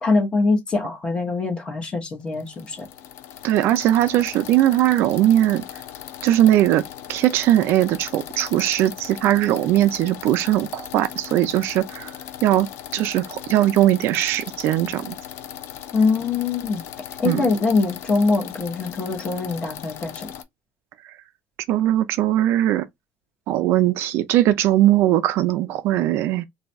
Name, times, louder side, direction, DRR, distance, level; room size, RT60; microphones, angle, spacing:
voice 1, 0.0-2.9 15.9-16.8 17.2-20.3, left 3 dB, 20° left, 0.8 m, -23 dB
sound 1, 2.3-20.4, left 10 dB, 55° left, 0.4 m, -38 dB
voice 2, 3.4-5.6 6.2-6.8 7.1-12.1 12.4-12.7 12.9-15.2 17.2-17.5 21.0-21.1 21.7-22.9 23.5-26.5, right 13 dB, 50° right, 0.3 m, -19 dB
2.6 x 2.3 x 4.1 m
cardioid pair, 175°, 5 cm